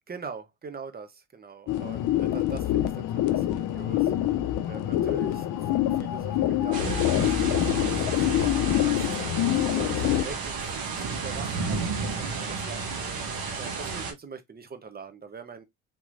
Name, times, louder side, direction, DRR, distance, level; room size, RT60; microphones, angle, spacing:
voice 1, 0.1-4.1 4.6-15.6, right 5 dB, 25° right, 0.8 m, -43 dB
sound 1, 1.7-10.2, left 12 dB, 55° left, 0.6 m, -25 dB
sound 2, 6.7-14.1, right 4 dB, 65° right, 1.1 m, -32 dB
3.7 x 2.9 x 2.5 m
hypercardioid pair, 65°, 37 cm